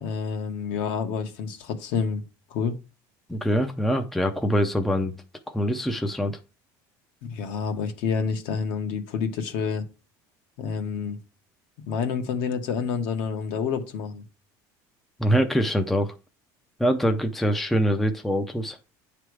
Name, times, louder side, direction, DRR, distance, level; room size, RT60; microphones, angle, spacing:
voice 1, 0.0-2.2 2.5-2.8 7.2-9.8 10.6-11.2 11.9-14.2, left 6 dB, 65° left, 1.3 m, -28 dB
voice 2, 3.3-5.1 5.5-6.4 15.2-16.1 16.8-18.8, equal, ahead, 0.5 m, -24 dB
9.5 x 3.4 x 4.7 m
cardioid pair, 160°, 9 cm